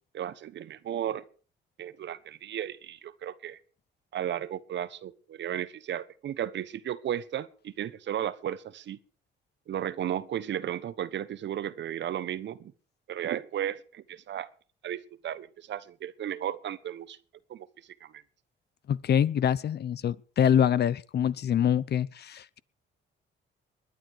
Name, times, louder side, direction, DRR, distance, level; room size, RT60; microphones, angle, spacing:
voice 1, 0.1-1.2 1.8-3.6 4.1-9.0 9.7-12.7 13.1-14.5 14.8-17.2 17.5-17.7 18.0-18.2, right 10 dB, 65° right, 1.1 m, -34 dB
voice 2, 18.9-22.6, left 9 dB, 55° left, 0.8 m, -25 dB
21.0 x 10.5 x 4.7 m
cardioid pair, 90°, 20 cm